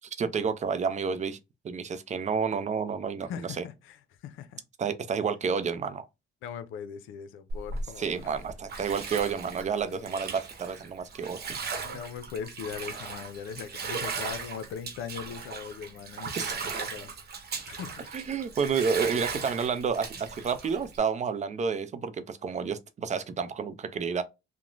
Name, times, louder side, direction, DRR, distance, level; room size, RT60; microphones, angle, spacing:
voice 1, 0.2-1.4 1.6-3.6 4.8-6.1 8.0-11.4 16.3-16.5 18.1-24.2, right 6 dB, 35° right, 0.5 m, -30 dB
voice 2, 3.3-4.6 6.4-8.3 9.8-10.3 11.8-17.1 17.6-18.1 19.4-19.6, left 7 dB, 90° left, 0.5 m, -40 dB
Bathtub (filling or washing), 7.5-21.0, right 5 dB, 55° right, 0.9 m, -37 dB
3.0 x 2.1 x 2.5 m
cardioid pair, 90°, 20 cm